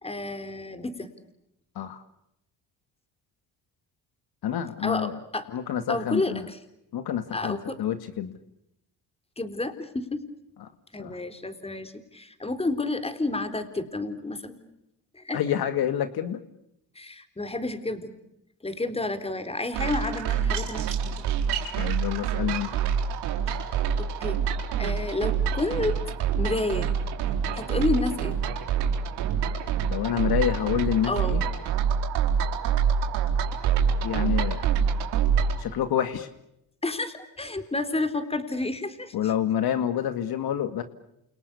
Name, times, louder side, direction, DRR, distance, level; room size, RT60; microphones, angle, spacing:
voice 1, 0.0-1.1 4.8-5.5 5.9-6.6 7.3-7.8 9.4-10.2 10.9-14.6 15.1-15.4 17.0-18.1 18.6-21.2 24.0-24.4 24.8-26.9 27.5-28.4 31.1-31.4 36.8-39.1, left 2 dB, 15° left, 9 dB, 3.9 m, -30 dB
voice 2, 4.4-5.2 5.5-6.5 6.9-8.3 10.6-10.7 11.0-11.2 15.3-16.4 21.8-22.7 29.9-31.4 34.0-34.7 35.6-36.3 39.1-40.8, left 10 dB, 65° left, 10 dB, 2.1 m, -28 dB
sound 1, 19.7-35.6, right 7 dB, 85° right, 4.2 m, -26 dB
29.0 x 29.0 x 6.9 m, 0.82 s
cardioid pair, 100°, 40 cm